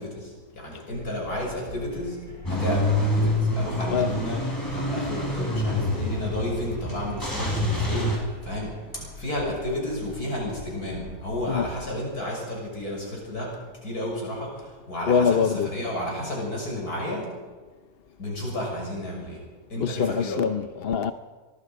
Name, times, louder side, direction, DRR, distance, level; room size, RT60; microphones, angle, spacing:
voice 1, 0.0-2.2 2.5-4.4 4.7-17.3 18.2-19.4 19.7-20.4, left 1 dB, 70° left, 6.9 m, -32 dB
sound 1, 0.9-11.8, equal, 65° right, 8.7 m, -42 dB
Car / Engine starting / Idling, 2.5-8.2, left 1 dB, 10° left, 4.7 m, -26 dB
voice 2, 15.1-15.7 19.8-21.1, left 6 dB, 50° left, 0.8 m, -24 dB
24.0 x 22.0 x 5.2 m
omnidirectional pair, 1.7 m